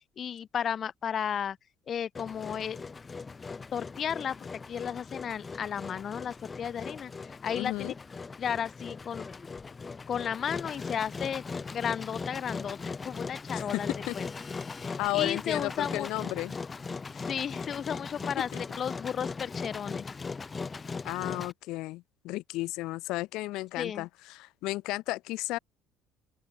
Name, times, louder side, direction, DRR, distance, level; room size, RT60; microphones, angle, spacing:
voice 1, 0.2-1.6 1.9-2.8 3.7-7.1 7.4-7.9 8.4-9.3 10.1-11.4 11.7-14.3 14.8-16.1 17.1-18.5 18.8-20.1 23.8-24.1, left 8 dB, 45° left, 2.0 m, -34 dB
Engine, 2.1-21.5, left 4 dB, 25° left, 6.3 m, -39 dB
voice 2, 7.5-7.9 13.5-14.2 15.0-16.6 21.0-25.6, left 19 dB, 75° left, 2.7 m, -33 dB
open air
supercardioid pair, 95°, 0 cm